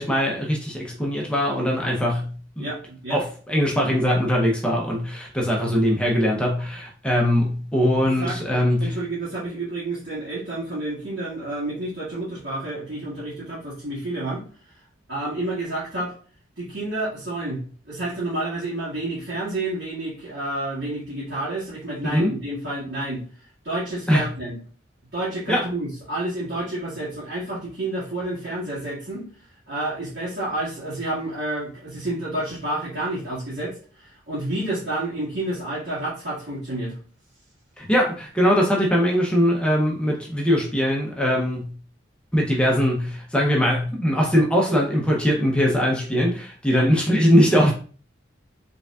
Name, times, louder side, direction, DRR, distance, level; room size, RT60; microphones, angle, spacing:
voice 1, 0.0-2.7 3.1-9.0 22.0-22.3 24.1-24.3 25.5-25.6 37.8-41.7 42.3-47.7, equal, 5° left, -2 dB, 0.6 m, -21 dB
voice 2, 2.6-3.2 3.7-3.9 8.0-14.4 15.1-16.1 16.6-17.6 17.9-23.2 23.6-24.6 25.1-29.3 29.7-36.9 46.7-46.9, right 1 dB, 60° right, -11 dB, 1.9 m, -30 dB
5.1 x 3.4 x 2.3 m, 0.41 s
head